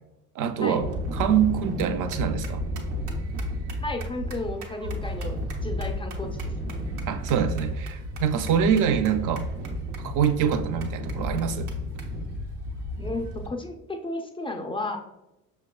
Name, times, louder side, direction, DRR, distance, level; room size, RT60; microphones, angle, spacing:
voice 1, 0.4-0.9 1.1-2.6 7.1-9.5 10.0-11.7, right 8 dB, 45° right, 10 dB, 0.5 m, -25 dB
sound 1, 0.8-13.5, equal, 70° right, 0.8 m, -32 dB
voice 2, 3.8-6.7 13.0-15.0, left 2 dB, 15° left, 3 dB, 0.4 m, -33 dB
5.7 x 2.3 x 2.3 m, 0.96 s
hypercardioid pair, 60°, 43 cm